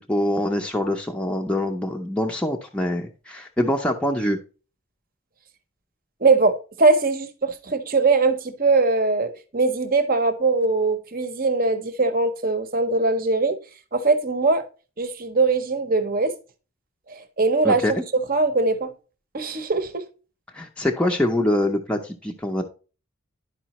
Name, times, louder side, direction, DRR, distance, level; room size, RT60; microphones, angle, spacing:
voice 1, 0.1-4.4 17.6-17.9 20.5-22.6, left 1 dB, 5° left, 0.6 m, -24 dB
voice 2, 6.2-13.6 13.9-14.6 15.0-16.3 17.1-17.8 18.3-18.9 19.3-20.0, right 3 dB, 45° right, 0.8 m, -21 dB
11.0 x 4.9 x 3.0 m
head